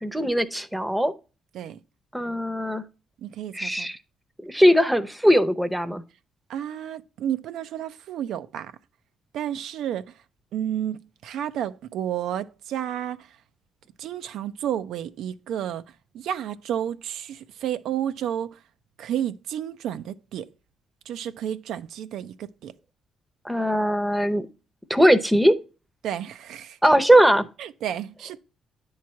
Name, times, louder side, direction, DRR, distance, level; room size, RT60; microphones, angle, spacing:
voice 1, 0.0-1.1 2.1-2.8 3.5-4.0 4.4-6.0 23.4-24.5 24.9-25.5 26.8-27.5, equal, 5° right, 0.7 m, -20 dB
voice 2, 3.2-3.9 6.5-8.7 9.3-10.1 10.5-13.3 14.0-15.8 16.1-18.6 19.0-20.5 21.1-22.7 26.0-26.8 27.6-28.4, right 10 dB, 80° right, 0.4 m, -31 dB
9.4 x 3.2 x 5.6 m
cardioid pair, 90°, 0 cm